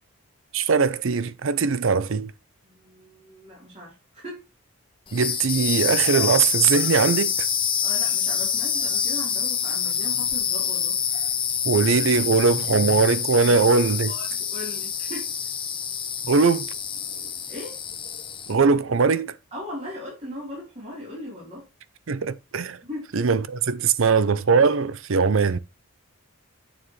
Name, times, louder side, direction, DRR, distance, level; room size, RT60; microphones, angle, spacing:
voice 1, 0.5-2.3 5.1-7.5 11.6-14.1 16.2-16.7 18.5-19.4 22.1-22.8 23.1-25.6, right 5 dB, 60° right, 0.5 m, -21 dB
voice 2, 2.6-4.4 7.8-11.0 14.1-15.3 17.5-17.8 19.5-21.7 22.8-23.1, left 1 dB, 30° right, 3.9 m, -38 dB
sound 1, 5.1-18.6, left 8 dB, 20° left, 1.0 m, -26 dB
8.4 x 7.1 x 3.2 m
head